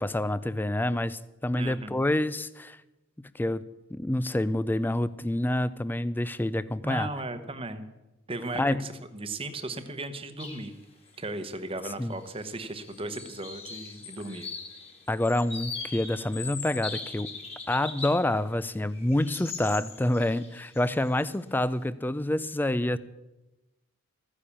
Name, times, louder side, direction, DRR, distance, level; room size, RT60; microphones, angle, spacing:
voice 1, 0.0-2.8 3.3-3.6 3.9-7.1 8.6-8.8 12.0-12.1 15.1-17.3 17.7-23.0, left 1 dB, 10° left, 17 dB, 0.4 m, -27 dB
voice 2, 1.6-2.0 6.8-7.9 8.3-10.8 11.2-14.5, right 2 dB, 25° right, 9 dB, 1.0 m, -36 dB
sound 1, 10.4-10.7 11.1-11.2 12.1-12.5 12.8-18.3 18.7-21.3, left 4 dB, 30° left, 2.2 m, -40 dB
14.5 x 9.9 x 7.1 m, 1.0 s
head